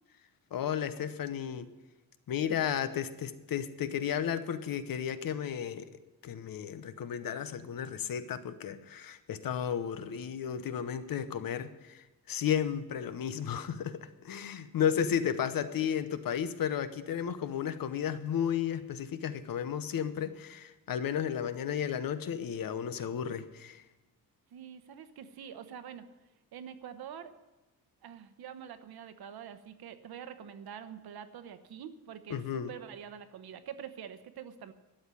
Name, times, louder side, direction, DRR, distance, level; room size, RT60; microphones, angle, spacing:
voice 1, 0.5-1.7 2.3-5.9 6.2-23.8 32.3-32.7, left 8 dB, 70° left, 12 dB, 1.0 m, -33 dB
voice 2, 24.5-26.1 26.5-27.3 28.0-34.7, right 8 dB, 85° right, 11 dB, 1.1 m, -46 dB
12.5 x 7.9 x 9.7 m, 1.1 s
wide cardioid pair, 155°, 36 cm